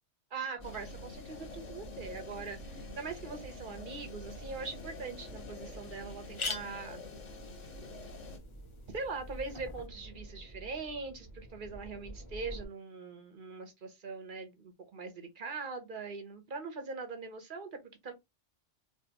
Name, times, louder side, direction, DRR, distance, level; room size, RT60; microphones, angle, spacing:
voice 1, 0.3-7.0 8.9-18.1, right 4 dB, 45° right, 0.9 m, -42 dB
sound 1, 0.6-8.4, left 3 dB, 80° left, 1.7 m, -48 dB
sound 2, 0.6-12.7, right 1 dB, 15° left, 1.2 m, -49 dB
sound 3, 4.8-4.9 5.4-5.5 5.7-5.8 6.1-9.9, left 4 dB, 40° left, 0.4 m, -44 dB
3.3 x 3.0 x 2.8 m
omnidirectional pair, 1.2 m